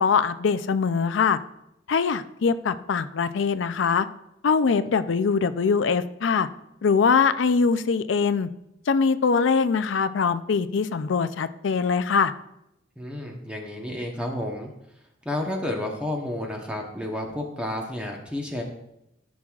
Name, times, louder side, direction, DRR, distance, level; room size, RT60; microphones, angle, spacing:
voice 1, 0.0-1.4 1.9-4.1 4.4-6.5 6.8-8.5 8.9-12.3, left 5 dB, 90° left, 12 dB, 0.4 m, -22 dB
voice 2, 13.0-14.7 15.2-18.6, left 1 dB, 5° right, 0 dB, 0.9 m, -31 dB
13.5 x 6.1 x 2.4 m, 0.82 s
head